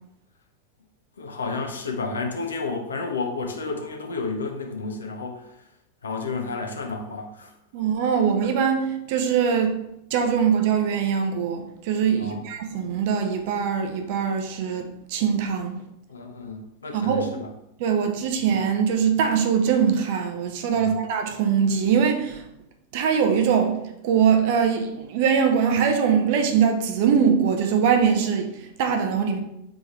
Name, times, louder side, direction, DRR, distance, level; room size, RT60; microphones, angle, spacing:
voice 1, 1.2-5.5 6.0-7.5 12.2-12.5 16.1-17.5 20.7-21.0, left 3 dB, 70° left, 0.7 m, -31 dB
voice 2, 7.7-9.7 10.1-15.8 16.9-17.3 17.8-22.4 22.9-23.8 24.0-29.4, right 7 dB, 50° right, 0.6 m, -22 dB
3.4 x 3.4 x 4.1 m
figure-of-eight pair, 90°, 0 cm